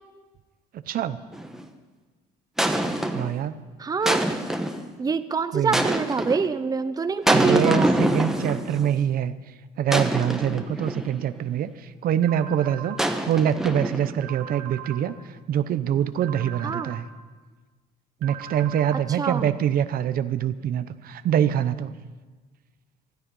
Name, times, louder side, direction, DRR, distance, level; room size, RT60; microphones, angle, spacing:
voice 1, 0.7-1.2 3.1-3.6 5.5-5.8 7.3-9.3 9.8-13.0 13.3-15.1 15.5-17.0 18.2-21.9, right 9 dB, 60° right, 12 dB, 0.8 m, -24 dB
sound 1, 1.3-1.6 2.6-3.4 4.1-4.9 5.7-6.5 7.3-8.9 9.9-11.1 13.0-14.2, right 1 dB, 5° right, 1.2 m, -25 dB
voice 2, 3.8-4.2 5.0-7.9 16.6-16.9 19.2-19.5, right 5 dB, 20° right, 11 dB, 0.7 m, -25 dB
sound 2, 12.2-13.0 14.2-15.0 16.2-17.0 18.2-19.0, right 11 dB, 85° right, 1.9 m, -39 dB
20.0 x 13.0 x 5.4 m, 1.4 s
cardioid pair, 110°, 17 cm